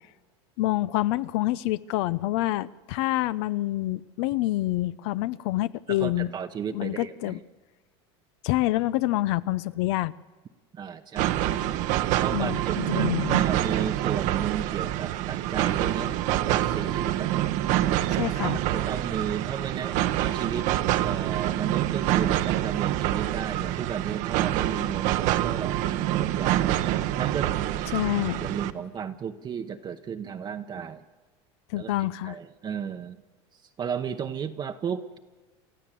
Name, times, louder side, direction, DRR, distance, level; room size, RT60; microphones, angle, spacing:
voice 1, 0.6-6.3 6.7-7.4 8.4-10.1 12.3-13.4 18.2-18.6 27.9-28.5 31.7-32.4, left 16 dB, 70° left, 16 dB, 0.6 m, -27 dB
voice 2, 5.9-7.4 10.7-11.5 12.2-17.3 18.5-25.8 26.2-26.7 27.1-27.7 28.4-31.0 31.8-31.9 32.2-33.2 33.8-35.2, right 7 dB, 30° right, 6 dB, 0.9 m, -34 dB
sound 1, 11.2-28.7, right 13 dB, 60° right, 1.0 m, -26 dB
29.5 x 13.5 x 7.6 m, 1.3 s
supercardioid pair, 110°, 14 cm